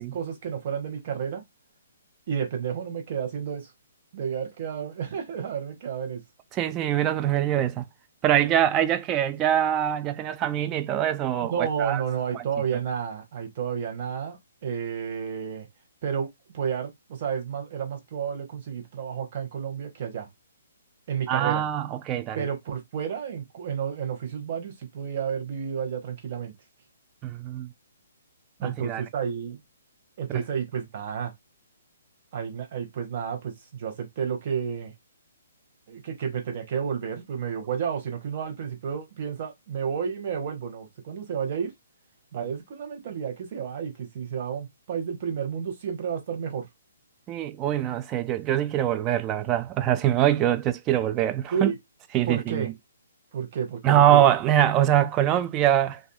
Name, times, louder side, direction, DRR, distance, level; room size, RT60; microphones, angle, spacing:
voice 1, 0.0-1.4 2.3-3.7 4.1-6.2 11.5-15.7 16.0-20.3 21.1-21.6 22.3-26.5 28.6-29.6 30.2-31.3 32.3-34.9 35.9-41.7 42.3-46.7 51.5-51.8 52.3-52.7 53.3-54.2, right 7 dB, 45° right, 1.0 m, -31 dB
voice 2, 6.5-7.9 8.2-12.0 12.3-12.4 21.3-22.4 27.2-27.7 28.6-29.0 47.3-51.7 52.1-52.7 53.8-56.0, right 11 dB, 25° right, 0.3 m, -23 dB
2.5 x 2.5 x 2.2 m
figure-of-eight pair, 135°, 0 cm